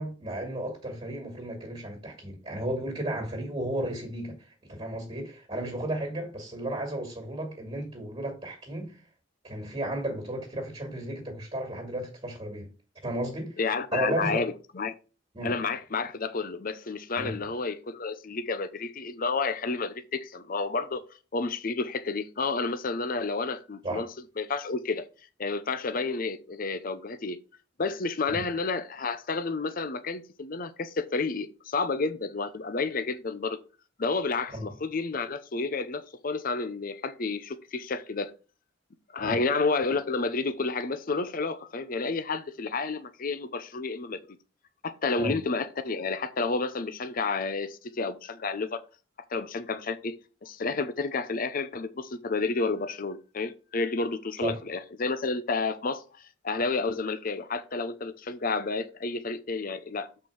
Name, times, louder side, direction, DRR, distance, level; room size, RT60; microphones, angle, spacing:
voice 1, 0.0-4.4 4.6-9.0 9.4-12.7 13.0-13.6 13.9-14.4 15.3-15.6 17.2-17.4 23.8-24.0 28.3-28.5 34.5-34.7 39.2-39.4 45.2-45.4 54.4-54.6, right 1 dB, 30° right, 2.1 m, -33 dB
voice 2, 13.6-14.9 15.4-21.0 21.3-24.1 24.4-25.0 25.4-27.4 27.8-33.6 34.0-38.3 39.1-44.2 44.8-48.8 49.3-50.1 50.4-60.3, left 3 dB, 45° left, 0.7 m, -30 dB
7.4 x 4.4 x 4.8 m
head